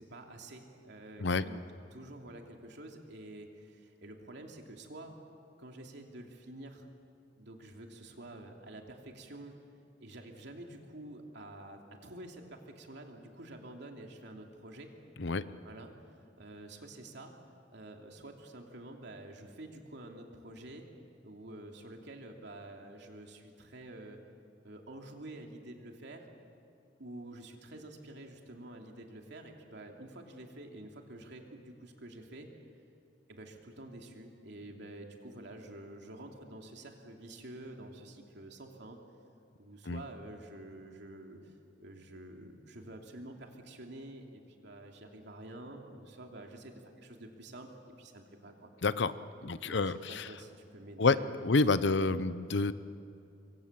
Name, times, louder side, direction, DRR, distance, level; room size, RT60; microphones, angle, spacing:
voice 1, 0.0-1.6 1.9-5.2 5.6-6.9 7.4-9.5 10.0-14.9 15.6-17.3 17.7-20.8 21.2-24.2 24.6-26.3 27.0-32.5 33.3-39.0 39.6-41.5 41.8-47.7 48.0-48.7 49.4-52.1, right 1 dB, 65° right, 2 dB, 3.0 m, -48 dB
voice 2, 48.8-49.1 49.4-50.3 51.0-51.2 51.4-52.7, left 3 dB, 65° left, 14 dB, 0.8 m, -28 dB
26.0 x 24.0 x 7.5 m, 2.6 s
head